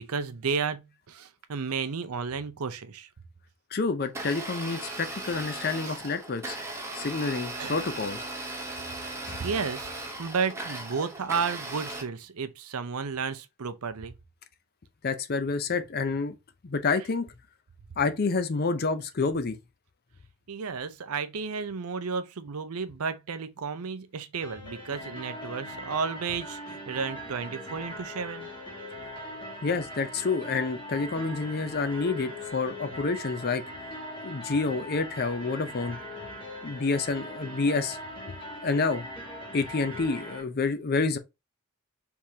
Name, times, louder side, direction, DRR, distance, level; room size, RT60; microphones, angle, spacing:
voice 1, 0.0-3.1 4.3-4.4 4.9-5.0 5.9-6.0 7.6-7.8 9.4-14.1 20.5-28.5, right 5 dB, 90° right, 0.6 m, -32 dB
voice 2, 3.7-6.6 6.9-8.2 9.3-9.4 15.0-16.3 16.6-17.3 18.0-19.6 29.6-33.6 34.2-36.0 36.6-38.0 38.3-38.4 38.6-39.1 39.5-41.2, left 4 dB, 45° left, 0.6 m, -28 dB
Domestic sounds home sounds, 4.0-12.0, right 2 dB, 15° right, 0.8 m, -37 dB
sound 1, 24.4-40.4, equal, 25° left, 1.5 m, -40 dB
4.7 x 3.5 x 2.8 m
head